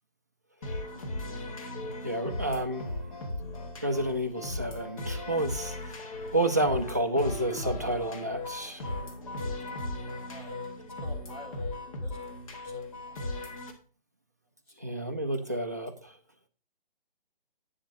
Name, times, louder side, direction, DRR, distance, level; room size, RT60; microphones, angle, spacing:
sound 1, 0.6-13.7, left 2 dB, 35° left, 1.4 m, -37 dB
voice 1, 2.0-2.9 3.8-5.9 6.3-8.9 14.8-16.1, right 1 dB, 20° right, 3 dB, 0.4 m, -30 dB
voice 2, 10.3-11.7 12.0-12.2 12.6-13.5, equal, 15° left, -1 dB, 2.1 m, -49 dB
9.4 x 7.1 x 2.6 m, 0.39 s
figure-of-eight pair, 155°, 29 cm